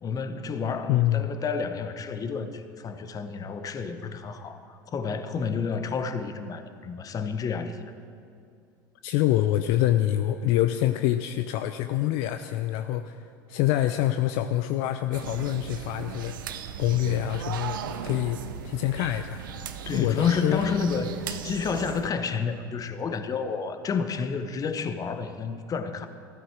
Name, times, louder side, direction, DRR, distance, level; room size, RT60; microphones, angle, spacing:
voice 1, 0.0-7.8 19.9-26.1, left 5 dB, 35° left, 9 dB, 1.1 m, -30 dB
voice 2, 0.9-1.3 9.0-13.2 13.5-16.4 16.8-18.4 18.6-19.4 19.9-20.6, left 13 dB, 60° left, 9 dB, 0.5 m, -25 dB
sound 1, 15.1-22.1, right 8 dB, 75° right, 0.7 m, -37 dB
14.0 x 12.5 x 4.7 m, 2.4 s
hypercardioid pair, 75°, 11 cm